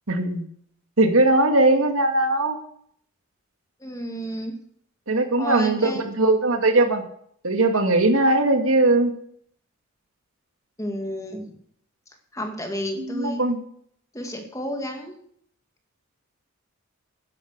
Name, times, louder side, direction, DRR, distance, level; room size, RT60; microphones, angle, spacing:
voice 1, 0.1-0.4 1.0-2.6 5.1-5.9 6.2-7.0 7.4-9.1 13.1-13.6, right 2 dB, 80° right, 6 dB, 2.0 m, -19 dB
voice 2, 3.8-4.5 5.4-6.1 10.8-11.6 12.3-13.4 14.1-15.2, equal, 15° left, 4 dB, 2.1 m, -31 dB
11.5 x 11.0 x 6.6 m, 0.64 s
head